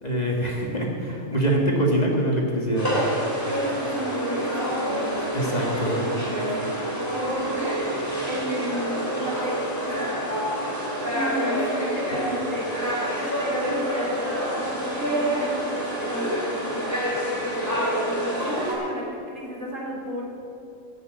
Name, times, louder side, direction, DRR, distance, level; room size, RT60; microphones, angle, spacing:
voice 1, 0.0-2.9 5.3-6.0, right 1 dB, 30° left, -1 dB, 1.8 m, -24 dB
sound 1, 2.8-18.7, equal, 10° left, 3.4 m, -27 dB
voice 2, 3.5-6.5 7.1-7.9 8.3-10.1 11.1-17.0 18.4-20.2, equal, 70° right, -4 dB, 3.4 m, -33 dB
14.5 x 8.2 x 7.9 m, 2.9 s
omnidirectional pair, 1.4 m